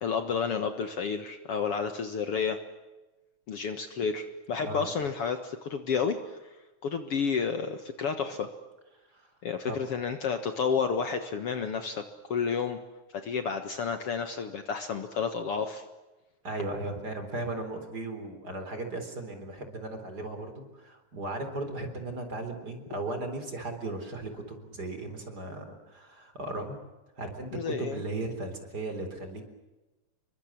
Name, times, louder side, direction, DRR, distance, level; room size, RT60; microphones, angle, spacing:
voice 1, 0.0-2.6 3.5-6.4 6.8-8.5 9.4-12.0 12.3-12.8 13.1-15.8 27.5-28.0, left 6 dB, 55° left, 8 dB, 2.2 m, -31 dB
voice 2, 16.4-26.8 27.2-29.4, right 2 dB, 30° right, 7 dB, 4.3 m, -36 dB
28.5 x 23.5 x 7.5 m, 1.1 s
omnidirectional pair, 3.4 m